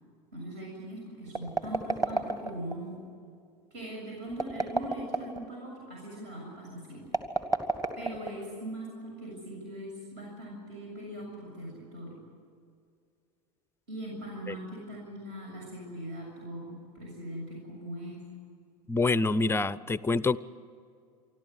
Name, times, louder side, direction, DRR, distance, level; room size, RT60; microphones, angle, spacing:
voice 1, 0.3-3.1 3.7-7.1 8.0-12.2 13.9-18.2, right 1 dB, 55° right, -2 dB, 7.1 m, -41 dB
sound 1, 1.3-2.8 4.3-5.4 7.1-8.6, right 2 dB, 15° right, 2.1 m, -30 dB
voice 2, 18.9-20.4, left 3 dB, 10° left, 18 dB, 0.5 m, -26 dB
27.5 x 12.5 x 9.7 m, 2.3 s
hypercardioid pair, 95°, 21 cm